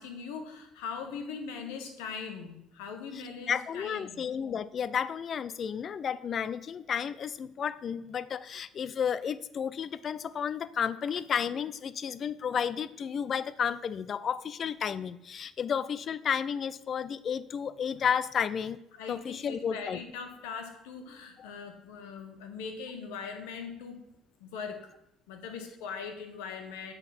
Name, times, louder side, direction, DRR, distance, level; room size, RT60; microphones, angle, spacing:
voice 1, 0.0-4.2 18.9-24.0 24.4-24.9 25.3-26.9, left 5 dB, 90° left, 6 dB, 1.3 m, -41 dB
voice 2, 3.5-18.8 19.1-20.0 21.4-21.5, left 7 dB, 45° left, 16 dB, 0.4 m, -32 dB
7.8 x 4.0 x 6.0 m, 0.82 s
supercardioid pair, 95°, 0 cm